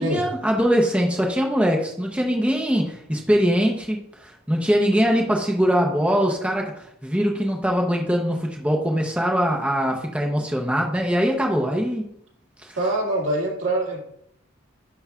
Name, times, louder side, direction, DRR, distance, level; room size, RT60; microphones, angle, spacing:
voice 1, 0.0-12.1 12.6-12.8, equal, 5° right, 0 dB, 0.7 m, -22 dB
voice 2, 12.8-14.0, right 1 dB, 70° right, -3 dB, 2.2 m, -24 dB
11.0 x 4.7 x 2.4 m, 0.71 s
head